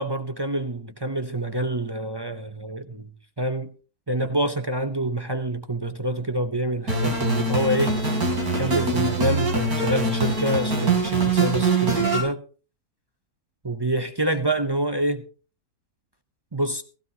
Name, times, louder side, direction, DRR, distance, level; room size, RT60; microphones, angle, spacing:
voice 1, 0.0-3.1 3.4-3.7 4.1-8.0 8.6-12.4 13.6-15.2 16.5-16.8, right 1 dB, 30° right, 0.5 m, -26 dB
sound 1, 6.9-12.2, right 3 dB, 85° right, 3.8 m, -23 dB
16.0 x 15.5 x 2.8 m
omnidirectional pair, 1.6 m